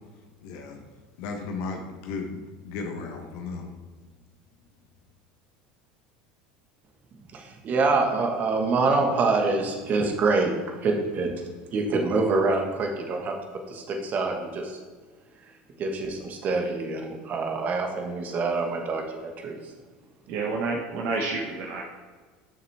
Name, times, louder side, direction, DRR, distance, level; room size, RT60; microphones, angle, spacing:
voice 1, 0.4-0.8 1.2-3.7, left 4 dB, 65° left, 3 dB, 0.9 m, -35 dB
voice 2, 7.3-11.3 11.7-13.3 13.7-14.8 15.8-19.7, right 3 dB, 40° right, 3 dB, 1.4 m, -26 dB
voice 3, 20.3-21.8, right 3 dB, 60° right, 0 dB, 1.0 m, -29 dB
6.7 x 6.6 x 3.5 m, 1.4 s
supercardioid pair, 110°, 4 cm